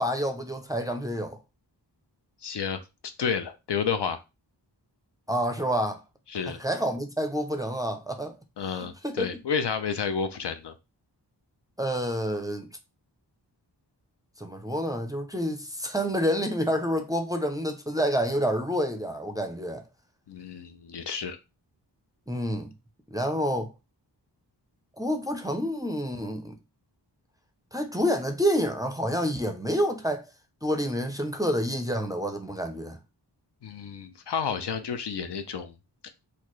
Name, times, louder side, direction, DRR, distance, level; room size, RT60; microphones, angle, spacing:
voice 1, 0.0-1.4 5.3-6.0 6.6-8.4 8.8-9.3 11.8-12.7 14.4-19.8 22.3-22.7 23.1-23.7 25.0-26.5 27.7-30.3 30.6-33.0, equal, 10° right, 0.4 m, -28 dB
voice 2, 2.4-2.8 3.2-4.2 6.3-6.6 8.6-10.7 20.3-21.4 33.6-35.7, left 6 dB, 70° left, 0.6 m, -30 dB
4.1 x 2.3 x 3.1 m
wide cardioid pair, 95°, 42 cm